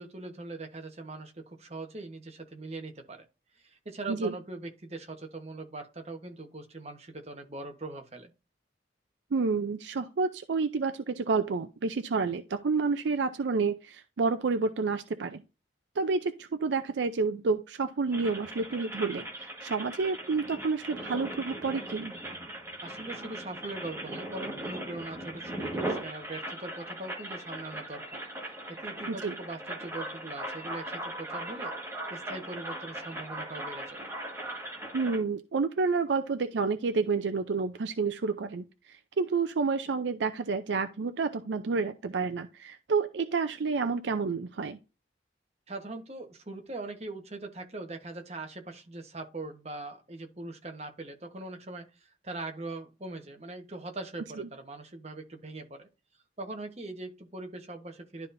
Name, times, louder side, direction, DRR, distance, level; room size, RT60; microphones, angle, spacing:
voice 1, 0.0-3.3 3.5-8.3 22.8-31.7 32.1-34.1 45.7-55.9 56.4-58.3, right 2 dB, 35° right, 1.1 m, -41 dB
voice 2, 9.3-15.4 16.0-22.1 29.1-29.3 34.9-44.8 54.4-54.5, right 4 dB, 85° right, 0.5 m, -29 dB
sound 1, 18.1-35.2, right 1 dB, 15° right, 1.4 m, -39 dB
12.0 x 4.1 x 2.6 m
head